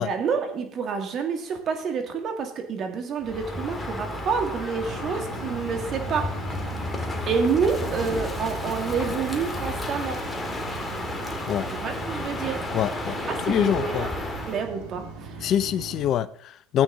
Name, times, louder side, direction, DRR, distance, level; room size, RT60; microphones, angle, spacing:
voice 1, 0.0-6.3 7.3-10.2 11.7-12.6 13.5-14.1 14.5-15.5, right 5 dB, 45° right, 2.0 m, -28 dB
Crow, 3.2-14.7, left 2 dB, 15° left, 1.9 m, -32 dB
sound 1, 4.8-16.1, right 4 dB, 70° right, 3.1 m, -39 dB
voice 2, 12.7-13.2 13.5-14.1 15.4-16.8, left 10 dB, 50° left, 0.4 m, -25 dB
13.0 x 8.4 x 3.9 m
hypercardioid pair, 80°, 0 cm